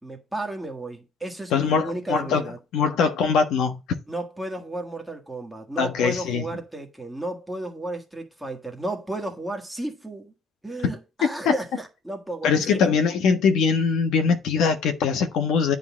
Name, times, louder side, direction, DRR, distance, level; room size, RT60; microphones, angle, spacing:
voice 1, 0.0-2.6 4.1-10.3 10.6-12.8, right 1 dB, 5° right, 1.6 m, -33 dB
voice 2, 1.5-2.4 2.7-3.8 5.8-6.4 11.2-11.5 12.4-15.8, left 5 dB, 80° left, 1.3 m, -22 dB
9.8 x 3.9 x 6.2 m
cardioid pair, 170°, 0 cm